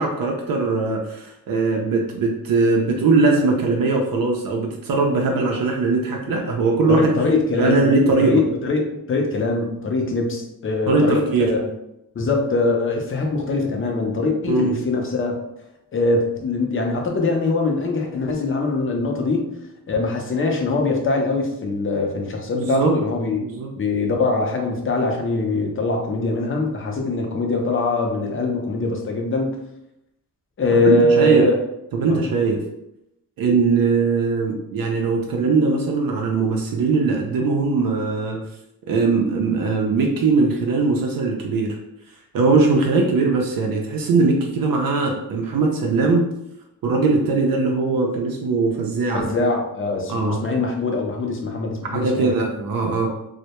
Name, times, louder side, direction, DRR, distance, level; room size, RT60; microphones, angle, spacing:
voice 1, 0.0-7.2 7.6-8.4 10.9-11.5 14.5-14.8 22.5-23.0 23.3-23.7 30.8-31.5 31.9-32.6 33.4-38.4 38.9-41.8 42.3-46.3 46.8-49.3 50.1-50.4 51.8-53.1, right 3 dB, 75° right, 1 dB, 0.5 m, -20 dB
voice 2, 6.9-7.9 8.2-11.7 12.2-15.4 15.9-19.5 19.9-23.4 23.8-29.6 30.6-31.6 32.1-32.2 49.2-52.5, left 3 dB, 35° left, 2 dB, 0.5 m, -22 dB
2.1 x 2.1 x 2.8 m, 0.84 s
wide cardioid pair, 100°, 35 cm